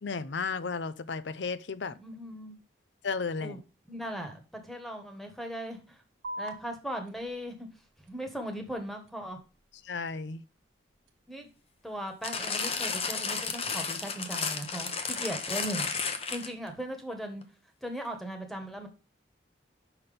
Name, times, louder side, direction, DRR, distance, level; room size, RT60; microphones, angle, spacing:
voice 1, 0.0-2.0 3.0-3.6 9.8-10.4, left 4 dB, 75° left, 0.6 m, -34 dB
voice 2, 2.0-2.6 3.4-3.6 3.9-6.0 6.4-7.7 8.1-9.4 11.3-11.5 11.8-15.9 16.3-17.4 17.8-18.9, equal, ahead, 1.4 m, -38 dB
sound 1, 6.2-13.2, right 1 dB, 80° right, 1.4 m, -48 dB
sound 2, 12.2-16.7 17.4-17.5, left 5 dB, 30° left, 0.9 m, -33 dB
5.9 x 5.9 x 5.1 m
head